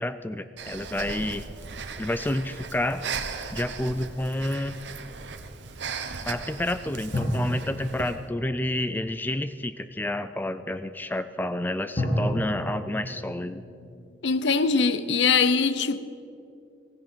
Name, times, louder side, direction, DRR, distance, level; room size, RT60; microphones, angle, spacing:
voice 1, 0.0-1.4 2.0-3.1 3.5-4.8 6.3-13.6, left 1 dB, 10° left, 0.3 m, -29 dB
Breathing, 0.6-8.2, right 5 dB, 80° right, 1.0 m, -37 dB
sound 1, 7.1-9.5 12.0-15.0, equal, 30° left, 2.4 m, -33 dB
voice 2, 14.2-16.0, left 5 dB, 80° left, 0.7 m, -22 dB
16.0 x 15.5 x 5.2 m
head